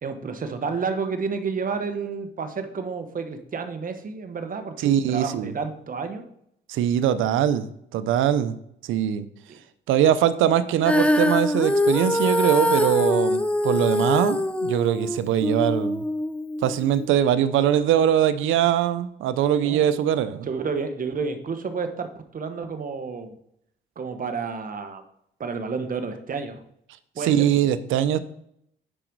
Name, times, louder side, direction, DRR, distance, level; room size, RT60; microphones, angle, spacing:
voice 1, 0.0-6.2 9.5-9.6 19.6-19.8 20.4-23.3 24.0-25.0 25.4-26.6 27.1-27.5, right 5 dB, 45° right, 7 dB, 1.2 m, -30 dB
voice 2, 4.8-5.5 6.7-7.7 7.9-8.6 8.8-9.3 9.9-16.0 16.6-20.5 27.2-28.2, right 10 dB, 90° right, 13 dB, 0.6 m, -22 dB
Female singing, 10.8-17.1, left 1 dB, 5° left, 0.7 m, -23 dB
9.9 x 5.1 x 4.7 m, 0.73 s
cardioid pair, 90°, 20 cm